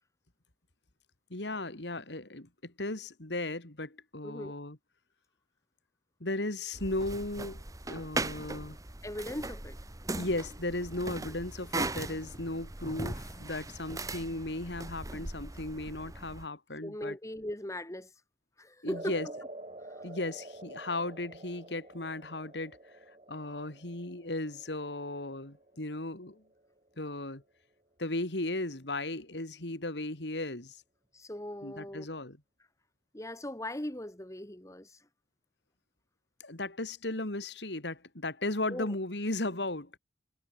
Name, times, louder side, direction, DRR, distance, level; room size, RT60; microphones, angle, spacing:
voice 1, 1.3-4.8 6.2-8.8 10.2-17.2 18.8-19.3 20.0-22.8 23.3-26.4 27.0-27.4 28.0-30.8 31.6-32.4 36.4-39.9, left 2 dB, 75° left, 3.0 m, -36 dB
voice 2, 4.2-4.5 9.0-9.8 16.8-18.1 18.6-19.2 19.9-20.0 31.1-32.1 33.1-35.0 38.7-38.9, left 1 dB, 15° left, 2.0 m, -39 dB
sound 1, 6.7-16.5, right 2 dB, 20° right, 1.3 m, -39 dB
sound 2, 18.9-27.2, right 2 dB, 35° right, 4.6 m, -49 dB
head